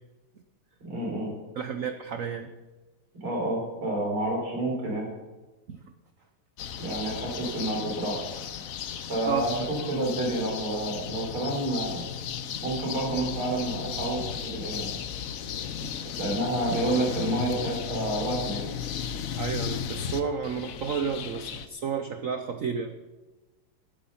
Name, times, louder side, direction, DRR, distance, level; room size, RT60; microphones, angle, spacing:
voice 1, 0.8-1.3 3.2-5.1 6.8-8.2 9.1-12.0 12.6-14.9 16.2-18.7, right 1 dB, 90° right, -2 dB, 5.7 m, -29 dB
voice 2, 1.6-2.5 5.7-5.8 9.2-9.8 15.8-16.2 19.4-23.0, right 6 dB, 60° right, 8 dB, 0.8 m, -32 dB
sound 1, 6.6-21.7, left 8 dB, 60° left, 0.9 m, -35 dB
14.0 x 11.5 x 5.8 m, 1.2 s
omnidirectional pair, 2.3 m